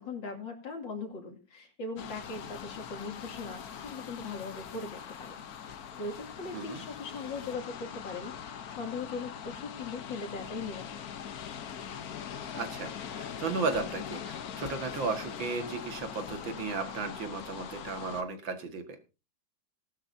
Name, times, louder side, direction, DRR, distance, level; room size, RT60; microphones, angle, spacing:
voice 1, 0.0-5.5 6.0-11.0, left 4 dB, 75° left, 3 dB, 3.2 m, -40 dB
sound 1, 2.0-18.2, left 8 dB, 55° left, 1.3 m, -42 dB
voice 2, 12.5-18.8, right 4 dB, 75° right, 7 dB, 2.5 m, -35 dB
19.0 x 12.0 x 2.7 m, 0.30 s
omnidirectional pair, 2.1 m